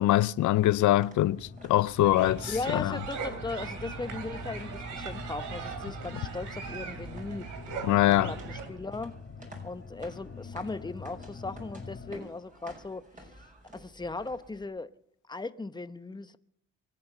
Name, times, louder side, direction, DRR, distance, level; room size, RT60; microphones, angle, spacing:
voice 1, 0.0-2.9 7.8-8.3, left 14 dB, 75° left, 0.6 m, -24 dB
sound 1, 0.5-14.6, right 1 dB, 25° right, 6.0 m, -53 dB
sound 2, 1.2-12.2, left 5 dB, 35° left, 1.9 m, -45 dB
sound 3, 2.0-8.7, right 5 dB, 80° right, 3.2 m, -39 dB
voice 2, 2.4-7.5 8.0-9.2 9.6-13.3 13.7-14.9 15.3-16.4, left 3 dB, 15° left, 0.9 m, -38 dB
24.0 x 8.7 x 6.7 m
cardioid pair, 90°, 30 cm